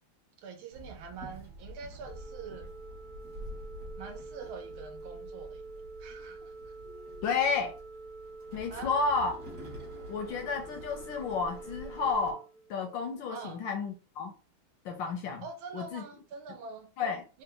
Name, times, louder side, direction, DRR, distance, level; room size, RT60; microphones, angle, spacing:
voice 1, 0.4-2.7 4.0-5.6 6.0-6.5 8.7-8.9 13.3-13.6 15.4-16.9 17.3-17.4, right 5 dB, 75° right, 1.6 m, -44 dB
Walk footsteps / Chatter / Hiss, 0.7-12.3, equal, 40° right, 1.1 m, -48 dB
Organ, 2.0-13.1, right 3 dB, 60° right, 1.6 m, -47 dB
voice 2, 7.2-7.7 8.5-9.3 10.1-12.4 12.7-14.3 14.8-15.4 15.7-16.0 17.0-17.2, left 4 dB, 75° left, 1.1 m, -31 dB
4.0 x 2.2 x 3.7 m
omnidirectional pair, 2.4 m